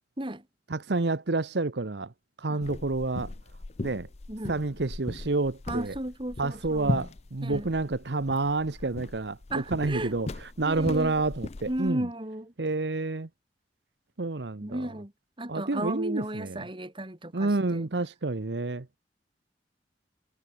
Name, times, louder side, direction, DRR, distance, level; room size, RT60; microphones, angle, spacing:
voice 1, 0.7-2.1 2.4-3.3 3.8-4.1 4.5-5.9 6.4-12.1 12.6-13.3 14.2-14.9 15.5-16.6 17.3-19.0, right 3 dB, 75° right, 1.0 m, -29 dB
sound 1, 2.6-11.9, left 2 dB, 35° left, 0.6 m, -38 dB
voice 2, 5.7-7.0 7.4-7.7 9.5-10.2 10.6-11.1 11.7-12.5 14.6-15.1 15.4-17.9, right 1 dB, 30° right, 2.5 m, -34 dB
head